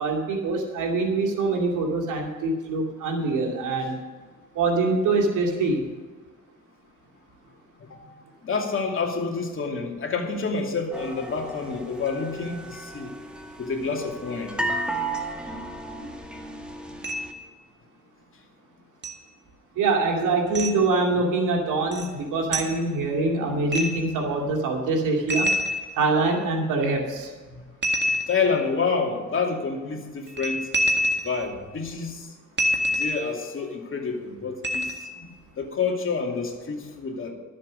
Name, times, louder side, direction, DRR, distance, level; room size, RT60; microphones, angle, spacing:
voice 1, 0.0-4.0 4.5-5.8 19.8-25.5 26.0-27.3, right 3 dB, 85° right, 1 dB, 2.5 m, -24 dB
voice 2, 8.4-13.1 13.6-14.6 27.5-27.7 28.3-30.7 31.2-32.3 32.9-34.9 35.6-37.3, left 4 dB, 45° left, 1 dB, 2.5 m, -28 dB
sound 1, 10.9-17.3, right 2 dB, 5° right, 1.9 m, -34 dB
sound 2, 17.0-17.4 19.0-19.1 20.5-20.8 21.9-22.1 22.5-22.8 23.7-24.1 25.3-26.3 27.8-28.7 30.3-31.5 32.6-33.4 34.6-35.2, equal, 35° right, 1.9 m, -26 dB
12.5 x 7.7 x 6.4 m, 1.4 s
cardioid pair, 90°, 30 cm